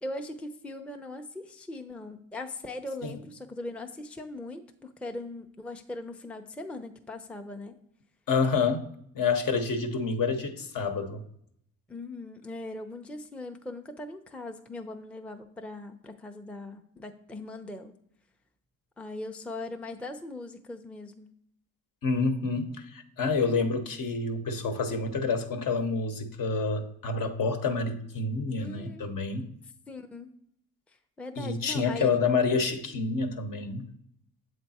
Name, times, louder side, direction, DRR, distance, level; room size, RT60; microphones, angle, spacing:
voice 1, 0.0-7.7 11.9-17.9 19.0-21.3 28.6-29.2 29.9-30.3 31.2-32.1, left 2 dB, 5° left, 5 dB, 0.4 m, -40 dB
voice 2, 8.3-8.9 9.1-11.2 22.0-29.5 31.4-33.9, left 4 dB, 60° left, 6 dB, 0.9 m, -28 dB
7.6 x 3.3 x 4.1 m, 0.73 s
cardioid pair, 75°, 37 cm